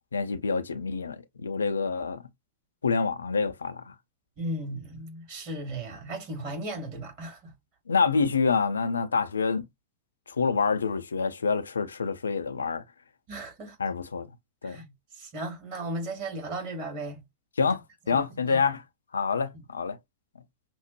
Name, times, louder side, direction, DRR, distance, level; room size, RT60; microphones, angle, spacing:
voice 1, 0.1-2.2 2.8-3.9 7.9-9.7 10.4-12.8 13.8-14.3 14.6-14.8 17.6-17.8 18.1-18.8 19.1-20.0, left 5 dB, 75° left, 0.5 m, -27 dB
voice 2, 4.4-7.5 13.3-13.8 14.6-17.2 18.1-18.6, right 1 dB, 45° right, 2.6 m, -36 dB
5.9 x 2.0 x 3.0 m
figure-of-eight pair, 90°, 0 cm